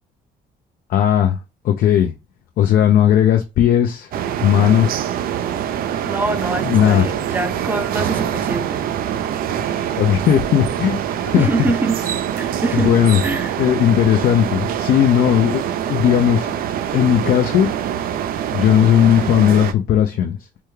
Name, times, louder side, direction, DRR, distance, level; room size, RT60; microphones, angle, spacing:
voice 1, 0.9-1.4 1.6-2.1 2.6-4.1 4.4-5.0 6.6-7.1 10.0-11.5 12.7-13.2 13.6-15.6 15.9-16.6 16.9-17.7 18.5-20.4, left 10 dB, 60° left, 0.5 m, -16 dB
sound 1, 4.1-19.7, right 9 dB, 60° right, 0.4 m, -24 dB
voice 2, 6.0-8.8 11.4-12.0 12.4-13.6, right 2 dB, 10° right, 0.5 m, -24 dB
3.4 x 2.2 x 3.1 m
cardioid pair, 110°, 17 cm